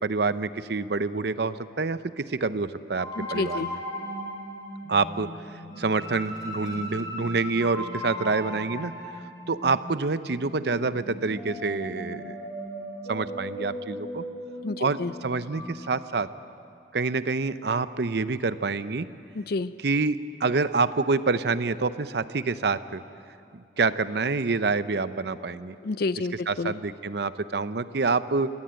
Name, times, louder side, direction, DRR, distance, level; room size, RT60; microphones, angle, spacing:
voice 1, 0.0-3.8 4.9-5.3 5.8-8.9 9.5-12.4 13.1-14.2 14.8-16.3 16.9-19.1 19.8-23.0 23.5-25.8 26.5-28.5, right 4 dB, 65° right, 14 dB, 0.7 m, -27 dB
sound 1, 3.0-15.7, equal, 20° left, 3.8 m, -37 dB
voice 2, 3.2-3.7 14.6-15.1 19.3-19.7 25.8-26.7, left 3 dB, 60° left, 15 dB, 0.5 m, -29 dB
23.5 x 17.0 x 8.9 m, 2.5 s
head